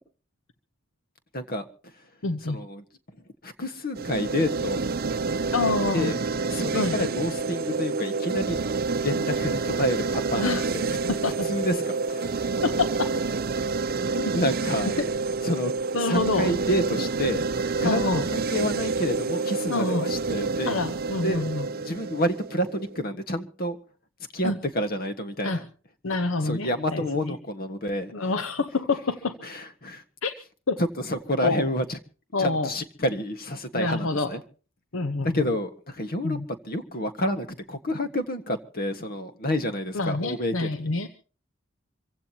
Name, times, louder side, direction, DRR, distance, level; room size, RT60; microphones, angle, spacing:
voice 1, 1.3-1.6 2.4-2.8 3.4-4.8 5.9-6.2 6.5-8.6 9.0-11.0 11.5-12.5 14.3-14.9 15.4-15.7 16.0-17.4 17.8-20.8 21.2-21.4 21.7-23.8 24.3-25.6 26.4-28.3 29.4-30.0 30.8-32.0 32.4-34.4 35.2-36.4 36.6-40.9, equal, 50° left, 9 dB, 1.6 m, -29 dB
voice 2, 2.2-2.6 5.5-6.1 6.7-7.0 10.4-10.7 11.1-11.5 12.6-13.1 14.2-14.3 15.9-16.5 17.8-18.2 19.7-20.1 20.7-21.7 24.4-24.6 25.4-25.6 26.0-27.3 28.1-29.4 30.2-30.3 30.7-30.8 31.4-31.6 32.3-32.7 33.7-34.3 34.9-35.3 36.2-36.5 39.9-41.1, left 3 dB, 85° left, 9 dB, 1.0 m, -27 dB
sound 1, 3.9-23.0, right 4 dB, 50° right, 0.7 m, -28 dB
26.0 x 16.0 x 2.9 m, 0.37 s
head